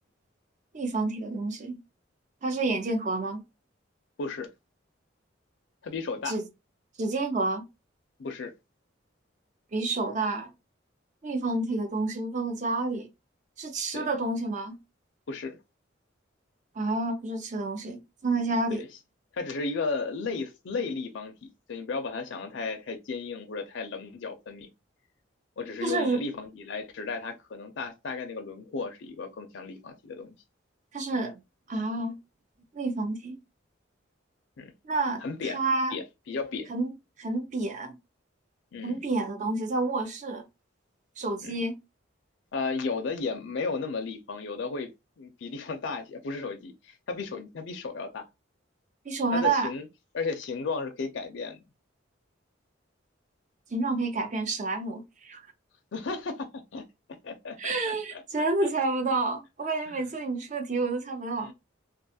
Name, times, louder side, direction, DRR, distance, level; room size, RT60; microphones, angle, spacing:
voice 1, 0.7-1.8 2.4-3.4 6.3-6.4 7.0-7.7 9.7-10.5 11.2-13.1 13.6-14.8 16.8-18.8 25.8-26.2 30.9-31.4 31.7-32.2 32.7-33.4 34.8-36.0 36.7-36.9 37.2-38.0 38.8-40.4 41.2-41.8 49.1-49.7 53.7-55.4 57.6-61.5, right 3 dB, 40° right, 0.5 m, -29 dB
voice 2, 4.2-4.5 5.8-6.4 8.2-8.5 13.9-14.2 15.3-15.6 18.7-18.9 19.3-24.7 25.6-30.4 34.6-34.7 35.2-35.6 35.9-36.7 38.7-39.0 41.4-41.6 42.5-44.9 45.2-48.3 49.3-49.9 50.1-51.6 55.9-56.8 57.2-58.7 59.9-60.0 61.4-61.5, left 4 dB, 65° left, 0.4 m, -34 dB
2.4 x 2.3 x 2.7 m
head